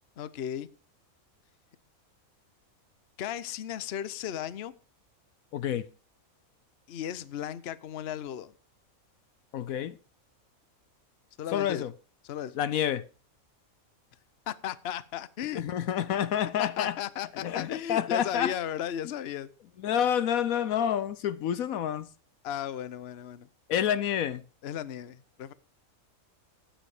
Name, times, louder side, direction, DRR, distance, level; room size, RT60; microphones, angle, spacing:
voice 1, 0.2-0.7 3.2-4.7 6.9-8.5 11.4-11.8 12.2-12.6 14.5-15.6 16.6-19.5 22.4-23.5 24.6-25.5, left 10 dB, 50° left, 0.9 m, -35 dB
voice 2, 5.5-5.9 9.5-10.0 11.5-11.9 12.5-13.1 15.5-16.9 17.4-18.5 19.8-22.1 23.7-24.4, left 9 dB, 75° left, 1.1 m, -28 dB
13.0 x 9.2 x 4.9 m
omnidirectional pair, 1.5 m